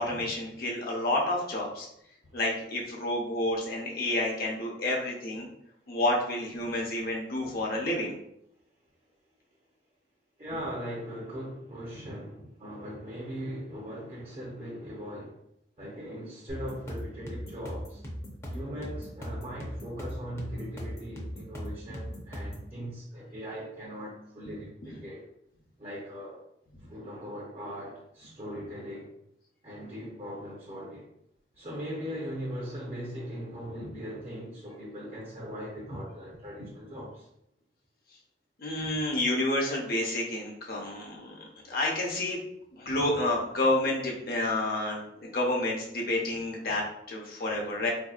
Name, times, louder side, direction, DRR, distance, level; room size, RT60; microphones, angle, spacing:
voice 1, 0.0-1.9 2.3-5.5 5.9-8.1 38.6-41.3 41.7-42.4 42.8-47.9, left 1 dB, 55° left, -1 dB, 0.7 m, -29 dB
voice 2, 10.4-15.4 15.8-18.0 18.5-25.3 25.8-26.4 26.8-29.1 29.6-31.1 31.6-37.3, equal, 35° right, -5 dB, 0.7 m, -39 dB
sound 1, 16.5-22.7, equal, 15° left, 0.6 m, -38 dB
4.0 x 2.6 x 2.4 m, 0.76 s
head